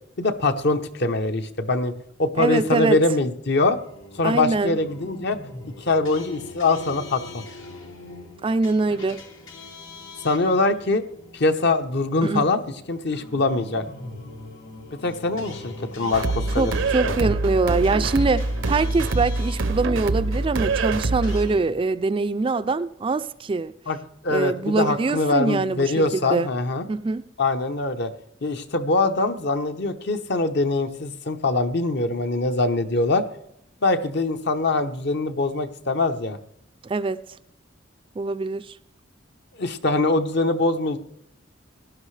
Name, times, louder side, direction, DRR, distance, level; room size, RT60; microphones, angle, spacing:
voice 1, 0.2-1.9 2.2-3.8 4.2-5.4 5.8-7.4 10.2-11.0 11.3-12.6 12.9-13.8 15.0-16.7 17.0-17.3 23.9-26.8 27.4-28.1 28.4-33.2 33.8-36.4 39.6-41.0, left 2 dB, 60° left, 0.9 m, -23 dB
voice 2, 2.4-3.0 4.2-4.8 8.4-9.2 12.2-12.5 16.6-23.7 24.3-26.5 26.9-27.2 36.8-37.2 38.2-38.7, right 3 dB, 25° right, 0.3 m, -23 dB
sound 1, 3.5-21.6, left 2 dB, 85° left, 2.2 m, -41 dB
sound 2, 16.1-21.5, right 3 dB, 80° right, 0.7 m, -25 dB
17.0 x 11.5 x 3.3 m
head